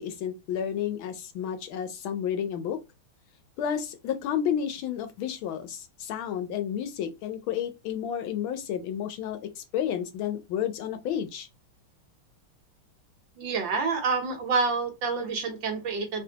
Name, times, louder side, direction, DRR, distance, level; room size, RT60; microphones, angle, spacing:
voice 1, 0.0-2.8 3.6-11.5, left 9 dB, 75° left, 1.3 m, -31 dB
voice 2, 13.4-16.2, right 4 dB, 65° right, 1.5 m, -28 dB
4.1 x 3.3 x 2.8 m
omnidirectional pair, 2.4 m